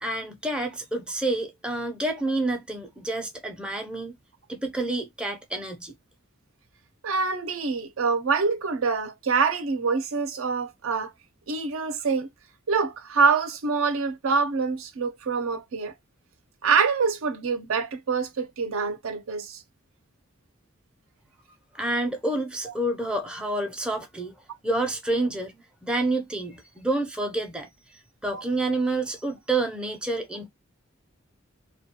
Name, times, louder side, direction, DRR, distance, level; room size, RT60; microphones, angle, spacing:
voice 1, 0.0-4.2 4.5-6.0 21.7-24.3 24.6-25.5 25.8-27.7 28.2-30.5, right 2 dB, 5° right, 0.4 m, -28 dB
voice 2, 7.0-11.1 11.5-12.3 12.7-15.9 16.6-19.6 28.3-28.7, right 5 dB, 75° right, 0.5 m, -25 dB
2.2 x 2.2 x 2.7 m
head